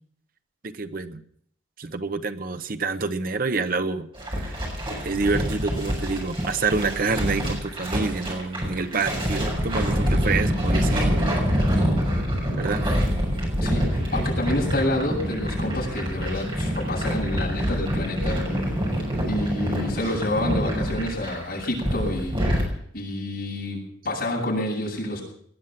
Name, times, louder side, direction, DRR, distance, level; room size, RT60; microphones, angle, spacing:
voice 1, 0.6-1.2 1.8-4.6 5.0-11.3 12.5-12.8, right 4 dB, 45° right, 10 dB, 0.8 m, -27 dB
sound 1, 4.1-22.6, equal, 25° right, 6.1 m, -26 dB
voice 2, 13.6-18.9 19.2-22.4 22.9-23.8 24.0-25.2, left 1 dB, 55° left, -4 dB, 7.9 m, -28 dB
19.5 x 11.0 x 6.0 m, 0.66 s
head